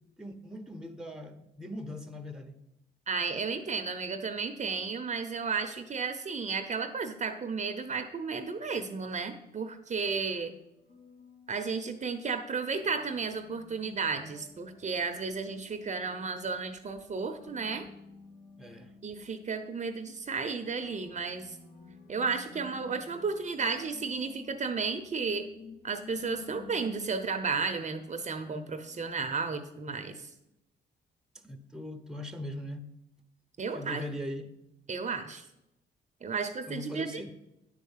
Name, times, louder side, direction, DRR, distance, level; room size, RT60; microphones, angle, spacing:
voice 1, 0.2-2.6 18.6-18.9 31.4-32.9 33.7-34.5 36.7-37.3, left 1 dB, 5° right, 6 dB, 1.0 m, -40 dB
voice 2, 3.1-10.5 11.5-17.9 19.0-21.6 22.1-25.5 25.8-30.3 33.6-34.0 34.9-35.5 36.2-37.3, right 5 dB, 35° right, 8 dB, 0.8 m, -33 dB
sound 1, 10.6-11.7 12.8-29.1, left 4 dB, 85° left, 4.0 m, -53 dB
10.0 x 4.6 x 7.3 m, 0.87 s
cardioid pair, 90°, 20 cm